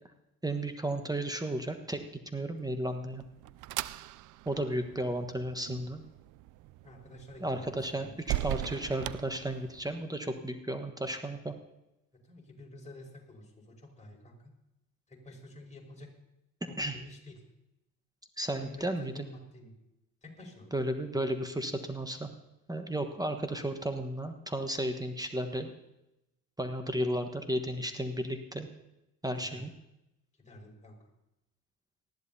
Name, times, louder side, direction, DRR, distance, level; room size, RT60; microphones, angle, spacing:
voice 1, 0.4-2.0 2.3-3.2 4.4-6.0 7.4-11.5 16.8-17.0 18.4-19.3 20.7-22.3 22.7-25.7 26.6-28.7 29.2-29.7, right 1 dB, 10° right, 7 dB, 1.3 m, -33 dB
sound 1, 2.7-10.0, right 16 dB, 40° right, 0.5 m, -40 dB
voice 2, 6.8-8.1 12.2-14.5 15.1-16.1 16.7-17.4 18.5-19.7 20.2-20.7 29.3-29.6 30.4-31.0, left 1 dB, 15° left, -1 dB, 5.2 m, -50 dB
19.5 x 14.5 x 2.8 m, 0.90 s
hypercardioid pair, 65°, 48 cm